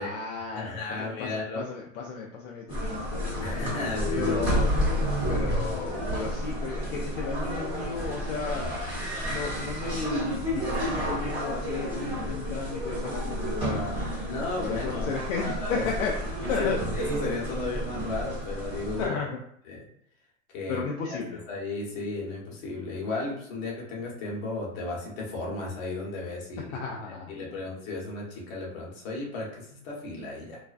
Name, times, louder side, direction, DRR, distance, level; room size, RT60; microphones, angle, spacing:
voice 1, 0.0-3.6 4.2-5.0 5.3-8.8 9.1-10.3 10.5-14.1 14.6-16.8 19.0-19.4 20.7-21.4 26.7-27.5, left 5 dB, 70° left, -1 dB, 0.5 m, -34 dB
voice 2, 0.5-1.6 3.4-4.4 14.3-15.8 16.4-16.7 17.0-19.2 19.7-19.8 20.5-20.8 21.5-26.8 27.3-30.6, left 3 dB, 45° left, -3 dB, 1.0 m, -34 dB
sound 1, 2.7-19.1, equal, 15° right, 1.0 m, -30 dB
2.4 x 2.1 x 2.4 m, 0.71 s
hypercardioid pair, 135°, 40 cm